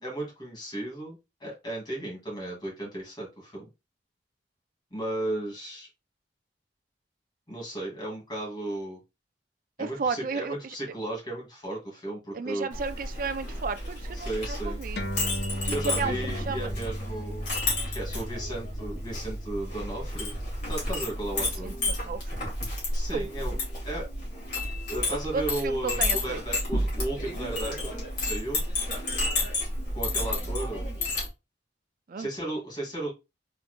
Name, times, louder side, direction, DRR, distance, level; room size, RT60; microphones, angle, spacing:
voice 1, 0.0-3.7 4.9-5.9 7.5-9.0 9.8-12.7 14.1-14.8 15.7-17.5 17.9-20.3 20.7-21.7 22.9-23.6 23.8-24.1 24.9-28.6 29.9-30.9 32.2-33.1, right 1 dB, 25° left, 2.2 m, -35 dB
voice 2, 9.8-10.7 12.3-15.0 15.7-16.7 21.6-22.5 23.1-23.3 25.3-26.4 32.1-32.3, right 4 dB, 50° right, 0.4 m, -33 dB
Chink clink, 12.7-31.3, left 2 dB, 45° left, 2.2 m, -31 dB
sound 1, 15.0-21.8, equal, 65° left, 0.7 m, -38 dB
4.3 x 3.7 x 2.2 m
head